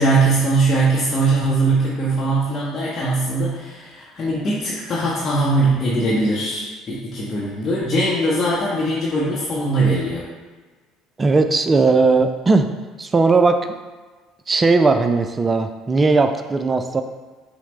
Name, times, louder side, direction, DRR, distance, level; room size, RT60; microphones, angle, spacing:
voice 1, 0.0-10.3, right 2 dB, 35° left, -6 dB, 0.7 m, -20 dB
voice 2, 11.2-12.7 13.0-13.7 14.5-17.0, right 3 dB, 25° right, 7 dB, 0.3 m, -17 dB
5.6 x 2.1 x 3.2 m, 1.3 s
hypercardioid pair, 60°, 0 cm